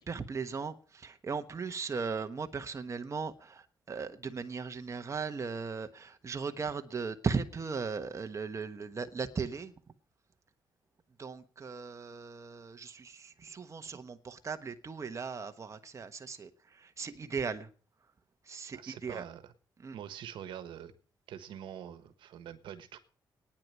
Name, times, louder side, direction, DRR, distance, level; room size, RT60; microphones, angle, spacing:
voice 1, 0.1-9.7 11.2-17.7 18.5-19.2 19.8-19.9, right 5 dB, 40° right, 7 dB, 1.3 m, -37 dB
voice 2, 18.7-19.5 19.9-20.9 21.3-23.0, right 9 dB, 80° right, 11 dB, 1.4 m, -45 dB
9.8 x 8.9 x 9.3 m, 0.42 s
cardioid pair, 75°, 8 cm